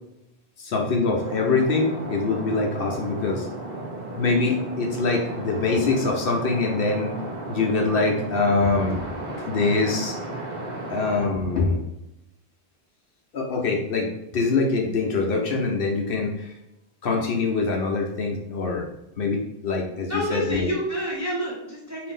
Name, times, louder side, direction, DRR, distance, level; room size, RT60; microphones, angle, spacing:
voice 1, 0.6-3.5 4.1-7.1 7.5-9.0 9.5-10.2 10.9-11.8 13.3-16.5 17.0-18.9 19.2-20.7, left 3 dB, 60° left, 0 dB, 0.7 m, -24 dB
sound 1, 1.1-11.7, right 2 dB, 45° right, 0.8 m, -34 dB
voice 2, 20.1-22.1, equal, 20° right, -4 dB, 0.5 m, -28 dB
2.6 x 2.5 x 3.6 m, 0.86 s
omnidirectional pair, 1.1 m